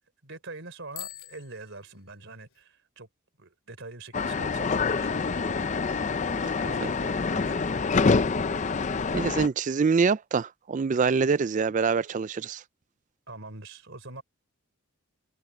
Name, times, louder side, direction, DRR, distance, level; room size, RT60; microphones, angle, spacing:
voice 1, 0.2-3.1 3.4-5.4 6.2-7.8 13.3-14.2, right 2 dB, 55° right, 4.3 m, -44 dB
Bicycle bell, 0.9-2.6, left 12 dB, 60° left, 3.6 m, -45 dB
sound 1, 4.1-9.5, left 4 dB, 35° left, 0.5 m, -26 dB
voice 2, 9.1-12.6, right 5 dB, 35° right, 0.3 m, -25 dB
open air
head